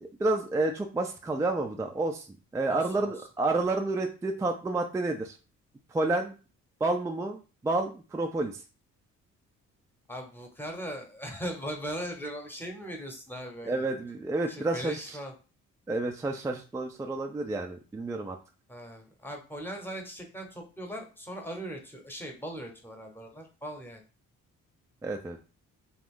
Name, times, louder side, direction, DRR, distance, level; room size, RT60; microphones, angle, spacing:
voice 1, 0.0-2.3 2.5-5.4 5.9-6.4 6.8-8.6 13.6-15.2 15.9-18.4 25.0-25.4, right 2 dB, 10° right, 3 dB, 0.3 m, -30 dB
voice 2, 2.7-3.1 10.1-13.8 14.5-15.3 18.7-24.0, equal, 5° left, 2 dB, 0.8 m, -39 dB
2.5 x 2.3 x 3.5 m, 0.34 s
cardioid pair, 90°, 30 cm